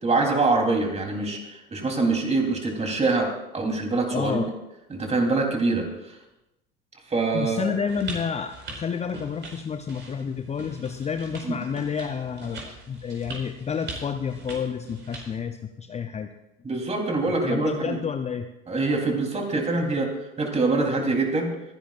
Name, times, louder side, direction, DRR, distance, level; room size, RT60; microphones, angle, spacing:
voice 1, 0.0-4.4 4.9-6.2 7.1-7.7 11.4-11.6 16.6-18.0 18.7-20.1 20.4-21.5, right 3 dB, 20° right, 2 dB, 3.6 m, -24 dB
voice 2, 4.1-4.5 7.3-16.3 17.3-18.5, left 6 dB, 20° left, 7 dB, 0.7 m, -30 dB
sound 1, 7.9-15.4, right 3 dB, 40° right, 4.9 m, -41 dB
26.5 x 10.5 x 2.5 m, 0.93 s
hypercardioid pair, 80°, 30 cm